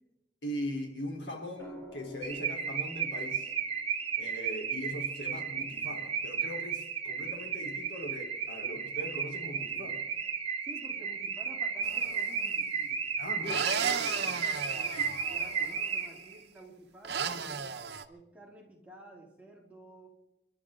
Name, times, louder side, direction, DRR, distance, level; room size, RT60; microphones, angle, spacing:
voice 1, 0.4-3.5 4.1-10.0 13.2-13.7 14.9-15.2, equal, 90° left, 2 dB, 3.8 m, -40 dB
sound 1, 1.6-5.7 7.4-7.8, equal, 15° left, 3.5 m, -52 dB
Car / Alarm, 2.2-16.4, right 6 dB, 35° right, 1.2 m, -34 dB
voice 2, 10.6-13.0 13.3-15.0 15.3-17.7 18.1-20.1, right 1 dB, 10° right, -2 dB, 2.8 m, -52 dB
sound 2, 11.8-12.4 13.4-15.9 17.0-18.0, right 6 dB, 70° right, 0.9 m, -35 dB
30.0 x 12.0 x 3.8 m, 0.93 s
head